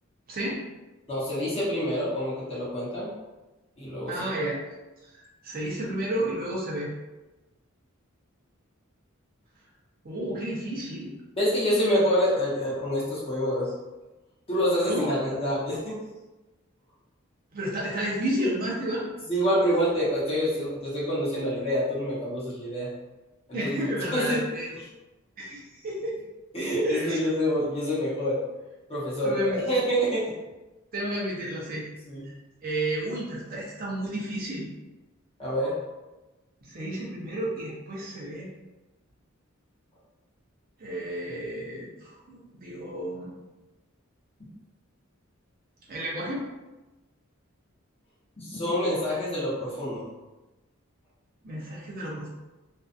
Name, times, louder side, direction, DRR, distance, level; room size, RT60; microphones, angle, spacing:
voice 1, 0.3-0.6 4.1-4.6 5.1-6.9 10.0-11.1 14.9-15.1 17.5-19.1 23.5-24.7 25.4-26.2 26.8-27.2 29.2-29.6 30.9-31.9 32.2-32.3 32.6-34.7 36.6-38.5 40.8-43.3 45.9-46.4 51.4-52.3, right 1 dB, 45° right, -4 dB, 0.6 m, -31 dB
voice 2, 1.1-3.1 3.8-4.4 11.3-13.7 14.5-16.0 19.3-22.9 23.5-23.8 24.1-24.4 26.5-28.4 28.9-30.3 32.1-32.3 35.4-35.8 48.4-50.0, equal, 30° left, -8 dB, 0.9 m, -27 dB
2.6 x 2.4 x 2.4 m, 1.1 s
head